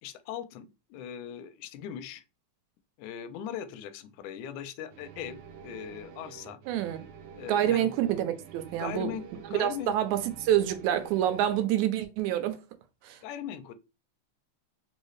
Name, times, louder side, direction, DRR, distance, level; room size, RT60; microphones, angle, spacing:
voice 1, 0.0-2.2 3.0-6.6 7.4-7.9 8.6-9.9 13.2-13.8, left 9 dB, 85° left, 2.0 m, -39 dB
sound 1, 4.9-11.6, right 8 dB, 70° right, 1.6 m, -48 dB
voice 2, 6.7-7.1 7.5-9.1 9.5-12.6 13.0-13.2, right 11 dB, 90° right, 2.0 m, -27 dB
4.8 x 2.7 x 3.1 m
omnidirectional pair, 3.4 m